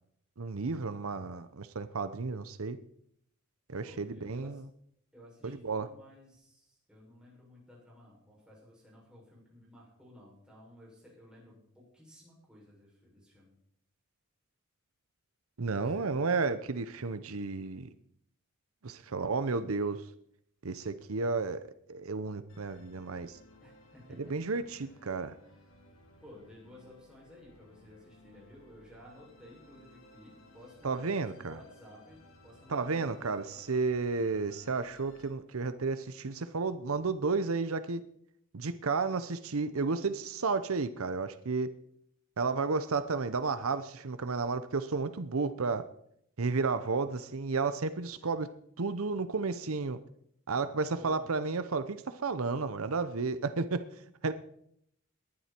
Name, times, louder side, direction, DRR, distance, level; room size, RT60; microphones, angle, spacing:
voice 1, 0.4-2.8 3.7-4.6 5.4-5.9 15.6-17.9 18.8-20.1 20.6-21.6 21.9-23.4 24.2-25.3 30.8-31.6 32.7-38.0 38.5-41.7 42.4-45.9 46.4-48.5 48.8-50.0 50.5-53.8 54.2-54.3, right 4 dB, 80° right, 12 dB, 0.8 m, -32 dB
voice 2, 3.8-4.6 5.1-13.5 15.7-16.5 23.6-24.3 24.7-25.0 25.4-25.7 26.2-33.8 48.2-48.3 50.9-51.6, left 1 dB, 5° right, -5 dB, 6.6 m, -55 dB
Musical instrument, 22.5-35.3, left 2 dB, 70° left, 3.4 m, -59 dB
19.5 x 11.5 x 4.5 m, 0.72 s
head